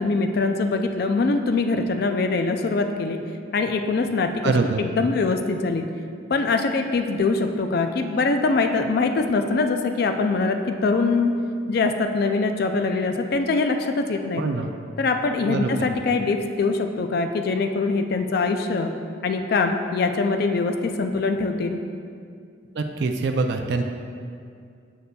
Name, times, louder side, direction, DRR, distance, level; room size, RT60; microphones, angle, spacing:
voice 1, 0.0-3.2 3.5-4.5 4.8-5.9 6.3-11.3 11.7-14.4 15.0-18.9 19.2-21.8, left 3 dB, 50° left, 6 dB, 0.3 m, -23 dB
voice 2, 4.4-4.9 14.4-14.7 15.5-16.0 22.7-23.8, right 3 dB, 60° right, 4 dB, 0.3 m, -24 dB
6.7 x 6.6 x 2.2 m, 2.3 s
head